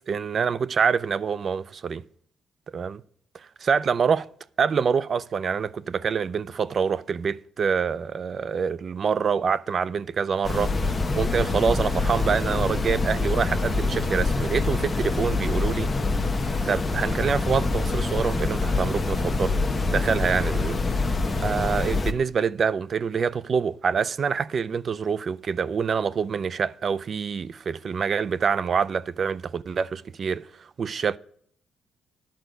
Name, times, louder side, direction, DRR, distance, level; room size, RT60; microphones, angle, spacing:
voice 1, 0.1-2.0 2.7-3.0 3.6-4.3 4.6-15.9 16.7-19.6 19.9-20.8 21.4-30.5 30.8-31.2, right 6 dB, 50° right, 0.4 m, -26 dB
sound 1, 10.4-22.1, left 3 dB, 25° left, 1.0 m, -25 dB
11.5 x 5.0 x 8.0 m
cardioid pair, 90°, 0 cm